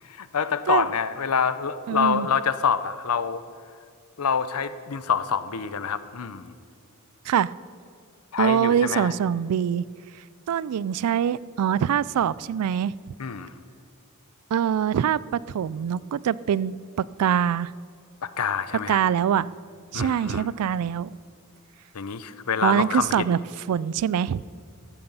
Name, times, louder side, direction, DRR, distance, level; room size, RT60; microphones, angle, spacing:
voice 1, 0.0-3.4 4.2-6.5 8.3-9.1 13.2-13.5 18.2-19.0 19.9-20.5 21.9-23.1, left 6 dB, 80° left, 14 dB, 0.7 m, -26 dB
voice 2, 1.9-2.3 7.3-7.5 8.4-9.8 10.5-12.9 14.5-17.7 18.9-19.5 19.9-21.2 22.6-23.4 23.7-24.4, right 8 dB, 85° right, 21 dB, 0.3 m, -24 dB
14.0 x 13.0 x 5.5 m, 2.2 s
head